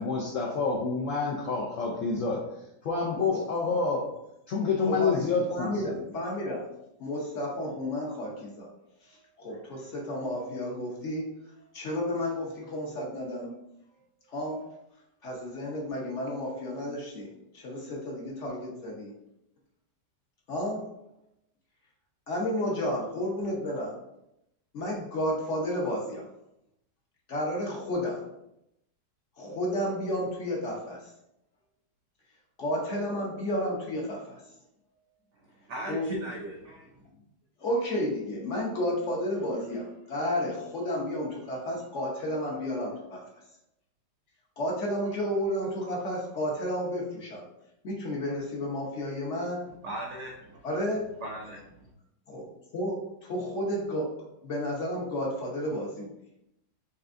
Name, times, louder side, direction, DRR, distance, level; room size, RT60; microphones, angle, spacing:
voice 1, 0.0-2.4 2.8-4.1 4.5-6.0, left 4 dB, 75° left, -2 dB, 0.7 m, -28 dB
voice 2, 4.8-5.2 5.5-6.6 7.0-8.7 9.0-11.3 11.7-13.5 14.3-14.7 15.2-19.1 20.5-20.9 22.3-23.9 24.7-26.3 27.3-28.3 29.4-31.1 32.6-34.4 35.9-36.1 37.6-43.2 44.6-47.4 47.8-49.7 50.6-51.1 52.3-54.1 54.4-56.1, equal, 55° left, -2 dB, 0.9 m, -32 dB
voice 3, 35.6-36.9 49.7-50.6 51.2-51.9, right 1 dB, 90° right, -1 dB, 0.6 m, -38 dB
4.4 x 3.3 x 2.5 m, 0.84 s
omnidirectional pair, 1.9 m